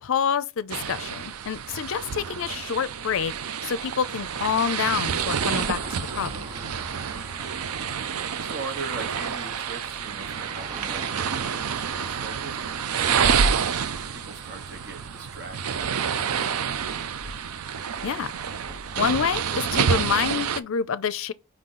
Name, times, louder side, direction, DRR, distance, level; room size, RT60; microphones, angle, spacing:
voice 1, 0.0-3.3 3.6-6.3 18.0-18.3 19.0-21.3, left 7 dB, 65° left, 0.4 m, -27 dB
sound 1, 0.7-20.6, right 7 dB, 80° right, 0.5 m, -28 dB
sound 2, 1.2-19.4, right 1 dB, 20° right, 0.8 m, -45 dB
sound 3, 5.5-9.8, left 1 dB, 20° left, 1.1 m, -46 dB
voice 2, 6.2-7.5 8.4-13.4 14.1-17.1, right 4 dB, 50° right, 1.1 m, -41 dB
5.0 x 3.8 x 5.6 m
head